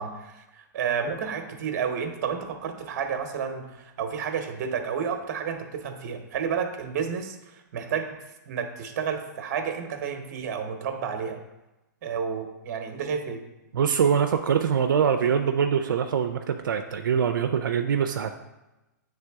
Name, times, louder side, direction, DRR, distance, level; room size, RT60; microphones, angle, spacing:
voice 1, 0.0-8.1 8.5-11.4 12.0-13.4, right 7 dB, 50° right, 6 dB, 0.9 m, -31 dB
voice 2, 13.7-18.3, right 7 dB, 90° right, 6 dB, 0.4 m, -23 dB
8.7 x 3.4 x 3.5 m, 1.0 s
hypercardioid pair, 145°, 11 cm